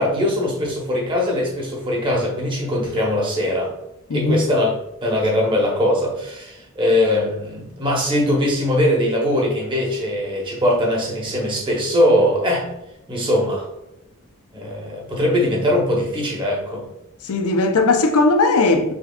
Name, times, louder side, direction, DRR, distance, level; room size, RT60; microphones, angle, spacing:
voice 1, 0.0-3.7 4.1-12.7 13.1-13.7 14.5-16.9, left 1 dB, 20° right, 0.9 m, -21 dB
voice 2, 4.1-4.4 17.2-18.9, left 3 dB, 85° left, 0.6 m, -17 dB
5.1 x 3.4 x 2.3 m
head